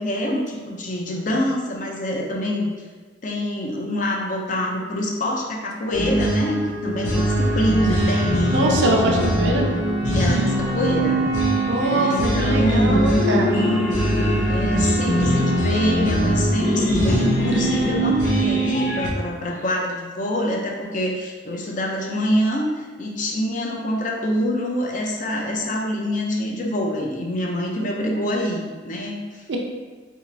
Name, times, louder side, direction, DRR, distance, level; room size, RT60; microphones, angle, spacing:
voice 1, 0.0-2.7 3.2-8.6 8.8-9.4 10.1-11.2 11.8-13.1 14.5-29.4, left 1 dB, 45° left, -1 dB, 0.5 m, -25 dB
sound 1, 5.9-19.1, equal, 90° left, 0.8 m, -21 dB
Trumpet, 7.1-16.6, equal, 10° right, 0.5 m, -34 dB
voice 2, 8.5-9.7 11.7-13.6 29.5-29.6, right 1 dB, 70° right, 0 dB, 0.6 m, -22 dB
3.0 x 2.8 x 3.9 m, 1.4 s
head